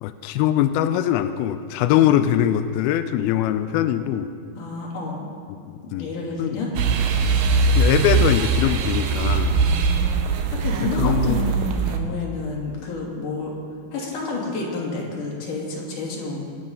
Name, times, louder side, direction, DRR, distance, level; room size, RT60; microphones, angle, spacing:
voice 1, 0.0-4.3 5.7-6.1 6.4-6.6 7.8-9.6 10.9-11.6, left 11 dB, 90° left, 10 dB, 2.2 m, -22 dB
voice 2, 4.6-5.3 5.8-6.7 9.5-13.5 13.9-16.4, left 3 dB, 50° left, -3 dB, 4.0 m, -30 dB
sound 1, 6.8-12.0, right 4 dB, 75° right, 2.1 m, -21 dB
23.0 x 8.9 x 5.5 m, 2.4 s
omnidirectional pair, 4.9 m